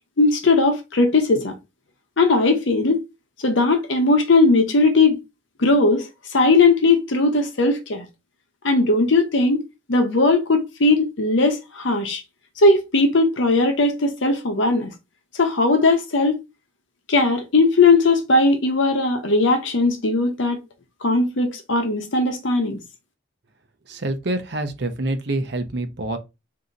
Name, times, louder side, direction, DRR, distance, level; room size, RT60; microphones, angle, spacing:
voice 1, 0.2-1.5 2.2-3.0 3.4-5.2 5.6-8.1 8.6-9.6 9.9-12.2 12.6-14.9 15.3-16.4 17.1-20.6 21.0-22.8, left 3 dB, 65° left, 0.8 m, -18 dB
voice 2, 23.9-26.2, right 2 dB, 55° right, 0.8 m, -26 dB
3.7 x 2.7 x 4.0 m
head